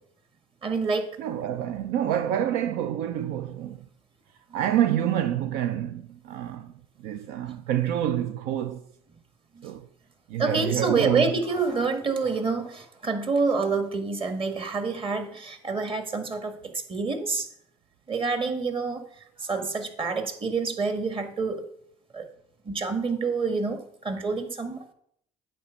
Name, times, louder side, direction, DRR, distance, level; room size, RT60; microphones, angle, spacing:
voice 1, 0.6-1.1 9.5-9.7 10.4-17.5 18.1-19.0 19.4-21.6 22.1-22.3 22.6-24.8, right 4 dB, 35° right, 1.6 m, -27 dB
voice 2, 1.2-3.8 4.5-6.7 7.0-8.8 9.6-9.9 10.3-11.3, right 11 dB, 70° right, 0.5 m, -27 dB
8.6 x 4.4 x 6.4 m
hypercardioid pair, 75°, 16 cm